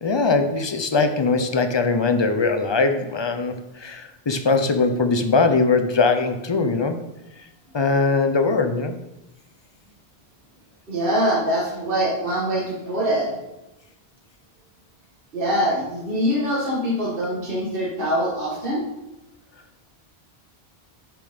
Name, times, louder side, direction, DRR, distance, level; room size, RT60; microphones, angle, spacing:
voice 1, 0.0-7.0 7.7-9.0, left 4 dB, 30° left, 8 dB, 0.6 m, -21 dB
voice 2, 10.9-13.3 15.3-18.8, equal, 55° right, -5 dB, 1.7 m, -23 dB
6.8 x 6.2 x 5.1 m, 0.93 s
omnidirectional pair, 1.1 m